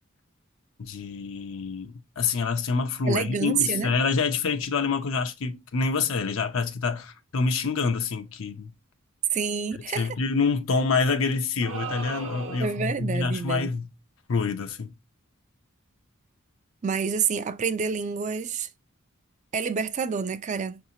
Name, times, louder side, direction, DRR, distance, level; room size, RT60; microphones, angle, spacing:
voice 1, 0.8-8.7 10.0-13.9 14.3-14.9, left 4 dB, 75° left, 0.6 m, -27 dB
voice 2, 3.1-3.9 9.3-10.1 12.6-13.7 16.8-18.7 19.5-20.8, right 6 dB, 35° right, 0.3 m, -28 dB
sound 1, 11.6-13.0, right 5 dB, 70° right, 0.9 m, -36 dB
5.6 x 2.7 x 2.7 m
head